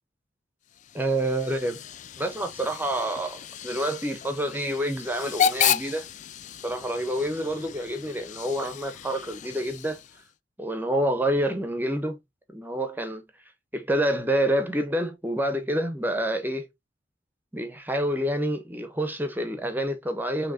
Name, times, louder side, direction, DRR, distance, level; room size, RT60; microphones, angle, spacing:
Hiss / Train / Alarm, 0.7-10.3, left 8 dB, 40° left, 0.3 m, -32 dB
voice 1, 0.9-1.8 2.2-6.1 6.6-10.0 10.6-12.2 12.5-13.2 13.7-16.7 17.5-20.5, right 1 dB, 10° right, 0.9 m, -28 dB
6.4 x 3.0 x 2.7 m
head